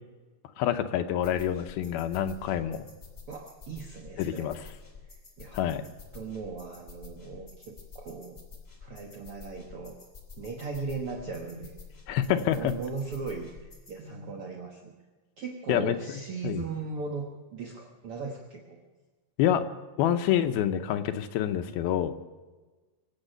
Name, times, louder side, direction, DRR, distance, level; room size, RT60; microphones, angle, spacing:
voice 1, 0.6-2.9 4.2-4.6 5.5-5.8 12.1-12.7 15.7-16.0 16.4-16.6 19.4-19.6 20.0-22.1, left 10 dB, 80° left, 8 dB, 2.6 m, -27 dB
sound 1, 1.2-14.0, left 5 dB, 15° left, 2.7 m, -49 dB
voice 2, 3.3-4.5 5.0-5.8 6.1-8.4 8.8-10.0 10.4-11.8 12.3-14.9 15.4-18.8, right 4 dB, 65° right, 1 dB, 1.4 m, -38 dB
23.5 x 9.0 x 6.6 m, 1.3 s
omnidirectional pair, 4.5 m